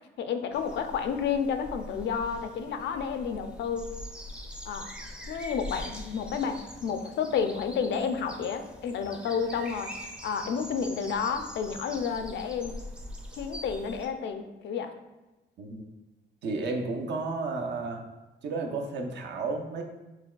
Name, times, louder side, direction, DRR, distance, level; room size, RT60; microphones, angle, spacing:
voice 1, 0.2-3.9 4.7-4.9 5.3-12.8 13.4-14.9, left 6 dB, 65° left, 7 dB, 0.4 m, -31 dB
sound 1, 0.5-14.1, left 1 dB, 5° right, 0.4 m, -43 dB
voice 2, 16.4-18.0 18.4-19.8, right 3 dB, 60° right, 3 dB, 0.6 m, -32 dB
5.8 x 2.2 x 2.3 m, 1.1 s
cardioid pair, 90°, 20 cm